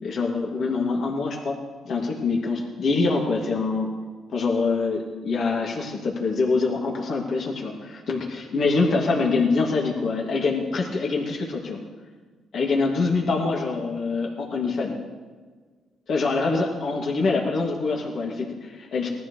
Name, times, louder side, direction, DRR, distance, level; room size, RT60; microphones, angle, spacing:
voice 1, 0.0-1.6 1.8-3.9 4.3-11.8 12.5-15.0 16.1-19.1, left 3 dB, 60° left, -2 dB, 2.5 m, -25 dB
20.0 x 13.5 x 3.3 m, 1.4 s
cardioid pair, 90°, 0 cm